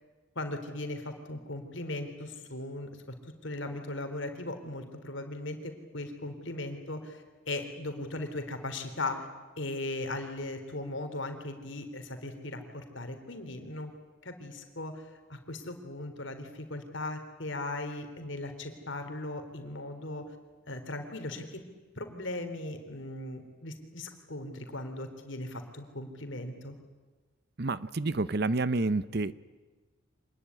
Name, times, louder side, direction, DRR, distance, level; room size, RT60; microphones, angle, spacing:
voice 1, 0.4-2.9 3.2-9.3 9.6-13.9 14.2-15.0 15.3-20.2 20.7-21.6 22.0-26.7, left 2 dB, 65° left, 6 dB, 3.7 m, -38 dB
voice 2, 27.6-29.3, right 3 dB, 50° right, 16 dB, 0.7 m, -29 dB
26.0 x 20.0 x 9.8 m, 1.3 s
head